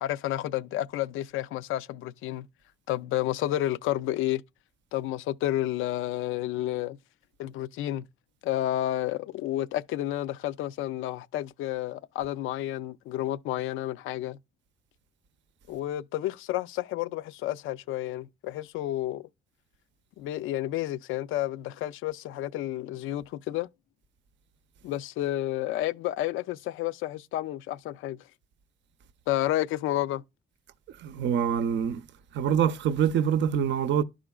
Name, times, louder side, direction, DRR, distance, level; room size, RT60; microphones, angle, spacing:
voice 1, 0.0-2.5 2.9-4.4 4.9-7.0 7.4-8.1 8.4-14.4 15.7-19.3 20.2-23.7 24.8-28.2 29.3-30.2, left 14 dB, 85° left, 0.4 m, -30 dB
voice 2, 31.0-32.0 32.3-34.0, right 8 dB, 65° right, 0.6 m, -25 dB
11.5 x 5.0 x 2.3 m
cardioid pair, 90°, 20 cm